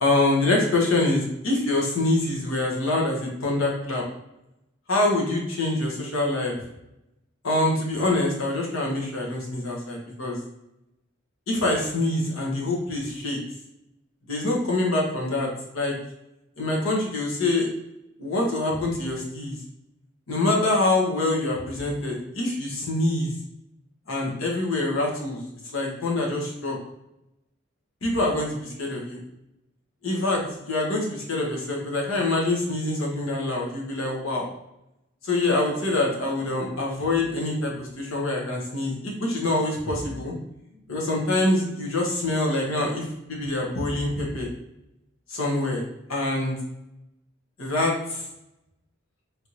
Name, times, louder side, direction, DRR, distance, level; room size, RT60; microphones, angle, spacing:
voice 1, 0.0-4.0 4.9-6.5 7.4-10.4 11.5-13.4 14.3-15.5 15.7-16.0 16.6-17.7 18.2-19.6 20.3-23.3 24.1-25.4 25.7-26.8 28.0-29.2 30.0-34.5 35.2-40.3 40.9-44.5 45.3-45.8 46.1-46.5 47.6-48.2, left 2 dB, 90° left, -2 dB, 1.0 m, -25 dB
3.4 x 2.6 x 2.9 m, 0.88 s
head